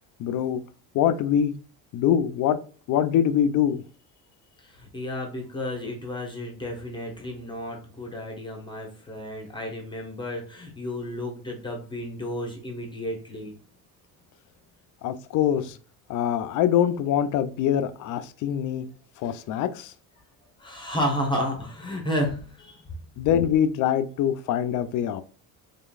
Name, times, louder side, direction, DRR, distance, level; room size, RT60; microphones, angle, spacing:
voice 1, 0.2-0.6 0.9-1.5 1.9-2.6 2.9-3.8 15.0-15.8 16.1-18.9 19.2-19.9 23.2-25.2, left 9 dB, 60° left, 0.5 m, -24 dB
voice 2, 4.6-13.5 20.6-22.8, equal, 15° left, 0.9 m, -32 dB
3.7 x 3.6 x 2.4 m
cardioid pair, 145°, 36 cm